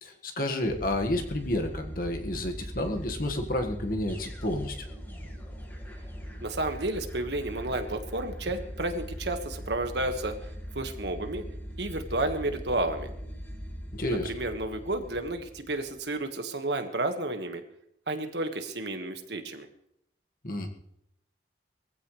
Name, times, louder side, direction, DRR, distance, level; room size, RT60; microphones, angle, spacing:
voice 1, 0.0-4.9 13.9-14.3 20.4-20.7, left 1 dB, 50° left, 4 dB, 1.7 m, -30 dB
sound 1, 0.6-16.0, equal, 10° left, 2.0 m, -40 dB
voice 2, 6.4-11.4 11.8-13.1 14.0-17.6 18.1-19.7, right 2 dB, 75° right, 6 dB, 1.6 m, -31 dB
22.0 x 15.5 x 3.3 m, 0.76 s
head